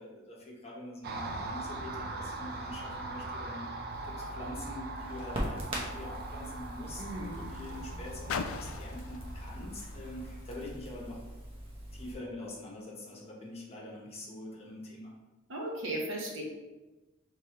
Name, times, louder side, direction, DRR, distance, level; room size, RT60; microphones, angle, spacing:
voice 1, 0.0-3.7 4.0-11.2 11.9-15.1, left 1 dB, 30° left, -3 dB, 1.0 m, -44 dB
Car passing by, 1.0-10.4, right 2 dB, 50° right, 0.4 m, -41 dB
Crackle, 3.9-12.1, equal, 25° right, 0.9 m, -42 dB
Car, 5.0-11.3 12.1-12.2, left 6 dB, 85° left, 0.3 m, -45 dB
voice 2, 7.0-7.4 15.5-16.4, right 1 dB, 65° right, -1 dB, 1.0 m, -36 dB
4.8 x 3.1 x 3.0 m, 1.1 s
head